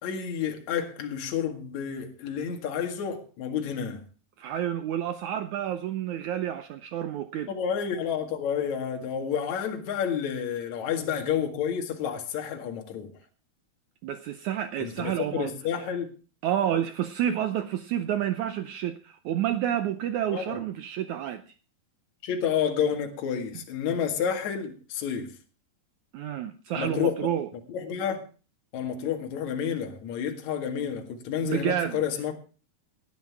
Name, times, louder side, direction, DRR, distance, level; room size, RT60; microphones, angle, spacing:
voice 1, 0.0-4.0 7.5-13.1 14.8-16.1 20.3-20.6 22.2-25.3 26.7-27.1 27.7-28.2 28.7-32.4, left 8 dB, 55° left, 2.9 m, -30 dB
voice 2, 4.4-7.5 14.0-15.5 16.4-21.5 26.1-27.5 31.4-32.0, right 10 dB, 80° right, 1.7 m, -29 dB
18.5 x 10.5 x 3.5 m
omnidirectional pair, 4.3 m